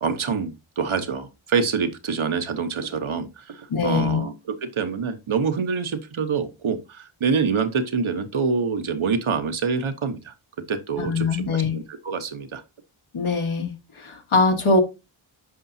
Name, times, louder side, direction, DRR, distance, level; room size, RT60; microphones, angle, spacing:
voice 1, 0.0-4.3 4.6-10.3 10.7-12.6, right 5 dB, 75° right, 1.1 m, -26 dB
voice 2, 3.7-4.2 11.0-11.8 13.1-14.8, left 3 dB, 80° left, 1.8 m, -22 dB
9.7 x 6.0 x 2.7 m
wide cardioid pair, 85°, 48 cm